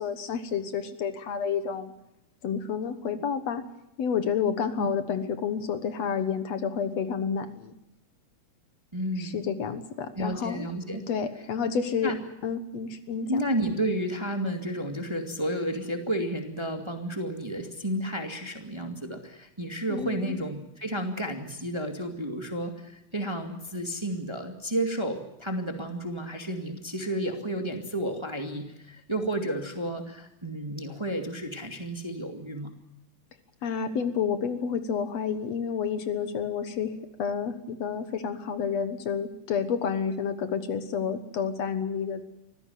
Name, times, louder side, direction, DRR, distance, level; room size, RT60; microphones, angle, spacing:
voice 1, 0.0-1.9 2.4-3.6 4.0-7.7 9.2-10.7 11.1-12.1 12.4-13.4 19.9-20.4 33.6-36.9 37.2-42.2, left 6 dB, 65° left, 10 dB, 2.4 m, -30 dB
voice 2, 8.9-9.4 10.2-11.0 11.6-11.8 12.0-12.2 13.3-32.7, right 1 dB, 10° right, 4 dB, 1.9 m, -32 dB
24.5 x 16.0 x 9.3 m, 0.85 s
omnidirectional pair, 3.3 m